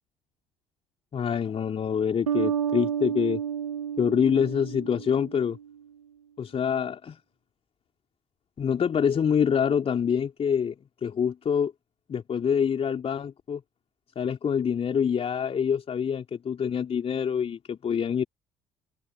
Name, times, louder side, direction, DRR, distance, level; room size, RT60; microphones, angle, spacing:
voice 1, 1.1-3.4 4.0-5.6 6.4-7.2 8.6-10.7 11.0-11.7 12.1-13.6 14.1-18.2, left 7 dB, 35° left, 3.3 m, -26 dB
sound 1, 2.3-5.6, right 8 dB, 80° right, 0.9 m, -30 dB
figure-of-eight pair, 55°, 17 cm